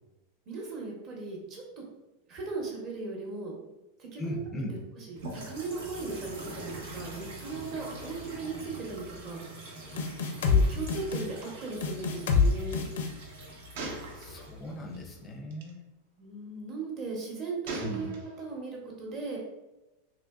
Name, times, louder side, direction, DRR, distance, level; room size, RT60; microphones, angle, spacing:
voice 1, 0.5-1.8 2.3-3.6 4.0-4.4 5.0-9.4 10.4-12.8 16.2-19.4, right 3 dB, 30° right, -1 dB, 0.8 m, -38 dB
voice 2, 4.2-4.7 14.1-15.9 17.8-18.1, equal, 15° left, 2 dB, 0.5 m, -38 dB
sound 1, 5.2-15.3, right 1 dB, 90° right, 1.2 m, -44 dB
sound 2, 10.0-10.6 10.9-11.2 11.8-12.5 12.7-13.1, left 6 dB, 85° left, 0.5 m, -25 dB
Gunshot gunfire, 11.4-11.5 11.8-11.9 13.7-14.7 15.5-15.7 17.7-18.6, right 2 dB, 60° right, 0.7 m, -40 dB
3.7 x 2.9 x 2.3 m, 1.0 s
supercardioid pair, 170°, 0 cm